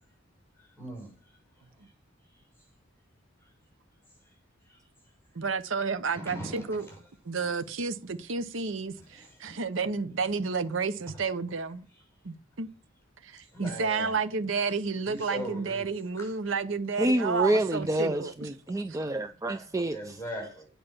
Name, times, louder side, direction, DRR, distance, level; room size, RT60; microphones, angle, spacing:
voice 1, 0.6-1.1 1.8-1.9 4.7-4.8 6.1-7.0 9.1-9.6 13.5-14.2 15.1-15.9 16.2-16.3 19.9-20.7, right 1 dB, 15° left, 5.5 m, -40 dB
voice 2, 5.3-6.9 7.2-11.9 12.2-12.7 13.2-18.5 18.9-19.1, right 4 dB, 65° right, 0.8 m, -31 dB
voice 3, 17.0-20.2, right 1 dB, 15° right, 0.4 m, -28 dB
8.8 x 5.6 x 7.2 m
head